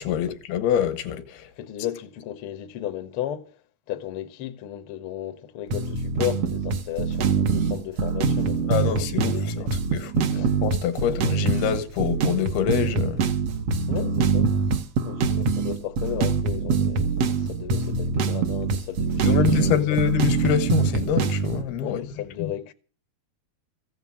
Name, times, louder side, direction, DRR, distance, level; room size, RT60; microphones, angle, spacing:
voice 1, 0.0-1.5 8.7-9.5 9.9-13.2 19.2-22.1 22.4-22.5, left 9 dB, 85° left, 3.2 m, -26 dB
voice 2, 1.5-3.6 3.9-9.7 10.3-10.5 11.0-11.3 13.8-20.0 21.8-22.7, left 11 dB, 70° left, 1.3 m, -34 dB
sound 1, 5.7-21.6, right 5 dB, 60° right, 1.7 m, -24 dB
15.5 x 9.0 x 7.3 m
omnidirectional pair, 4.3 m